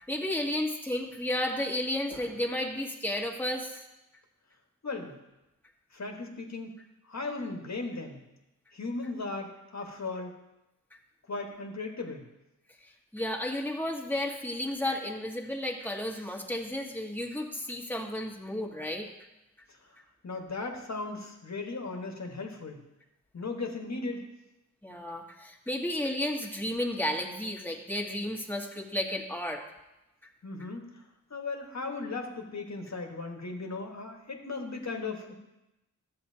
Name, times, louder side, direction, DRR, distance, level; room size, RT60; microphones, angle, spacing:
voice 1, 0.1-3.8 12.8-19.1 24.8-29.6, left 1 dB, 5° left, 0 dB, 1.6 m, -32 dB
voice 2, 4.8-5.2 5.9-6.8 7.1-8.2 8.7-10.3 11.3-12.2 20.2-22.8 23.3-24.3 30.4-30.8 31.3-35.3, left 3 dB, 55° left, 2 dB, 1.5 m, -37 dB
13.5 x 7.6 x 2.8 m, 0.94 s
cardioid pair, 45°, 32 cm